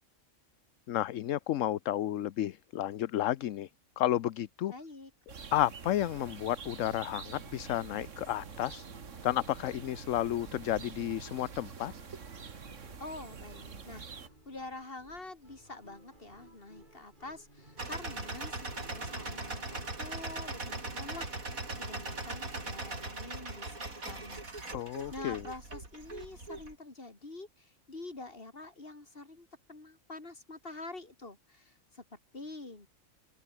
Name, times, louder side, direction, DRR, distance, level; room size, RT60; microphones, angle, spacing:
voice 1, 0.9-3.7 4.0-4.7 5.5-8.8 9.2-11.9 24.7-25.4, left 13 dB, 70° left, 1.0 m, -32 dB
voice 2, 4.7-5.1 13.0-14.2 14.5-21.3 21.7-24.4 25.1-32.9, left 2 dB, 40° left, 3.5 m, -46 dB
sound 1, 5.3-14.3, right 6 dB, 60° right, 1.9 m, -46 dB
sound 2, 8.4-22.4, right 1 dB, 35° right, 7.9 m, -59 dB
sound 3, 17.8-26.7, right 2 dB, 85° right, 5.1 m, -40 dB
open air
omnidirectional pair, 1.4 m